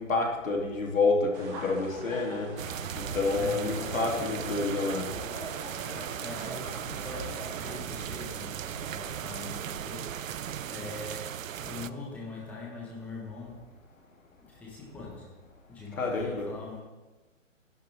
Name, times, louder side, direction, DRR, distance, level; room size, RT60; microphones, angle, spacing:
voice 1, 0.0-2.5 3.0-5.1 16.0-16.5, left 3 dB, 85° left, 1 dB, 3.0 m, -28 dB
sound 1, 1.3-7.8, right 2 dB, 15° right, 1.3 m, -42 dB
sound 2, 2.6-11.9, right 10 dB, 85° right, 0.6 m, -37 dB
voice 2, 3.3-4.7 5.8-13.8 14.4-15.4 15.7-16.8, left 3 dB, 5° left, -4 dB, 1.3 m, -42 dB
12.0 x 11.0 x 3.5 m, 1.2 s
hypercardioid pair, 165°, 39 cm